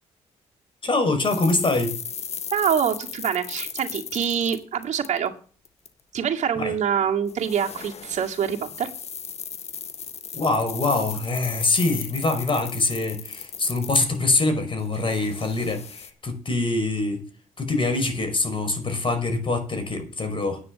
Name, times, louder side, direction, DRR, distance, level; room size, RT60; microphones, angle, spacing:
voice 1, 0.8-1.9 6.6-6.7 10.3-17.2 17.6-20.6, left 2 dB, 40° left, 8 dB, 5.2 m, -24 dB
sound 1, 1.2-5.3 5.6-5.9 7.3-14.4 14.8-16.1, left 7 dB, 60° left, 1.6 m, -36 dB
voice 2, 2.5-5.3 6.1-8.9, right 8 dB, 70° right, 3 dB, 2.2 m, -25 dB
10.0 x 9.5 x 7.0 m, 0.41 s
supercardioid pair, 55°, 13 cm